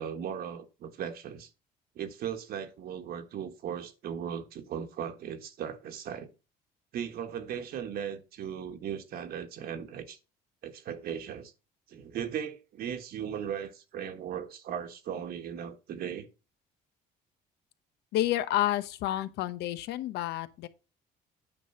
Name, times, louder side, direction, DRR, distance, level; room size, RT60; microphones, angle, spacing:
voice 1, 0.0-1.5 1.9-6.3 6.9-10.2 10.6-11.5 11.9-16.3, right 8 dB, 65° right, 1.4 m, -37 dB
voice 2, 18.1-20.7, left 13 dB, 85° left, 1.0 m, -30 dB
9.2 x 5.3 x 5.6 m
cardioid pair, 110°, 17 cm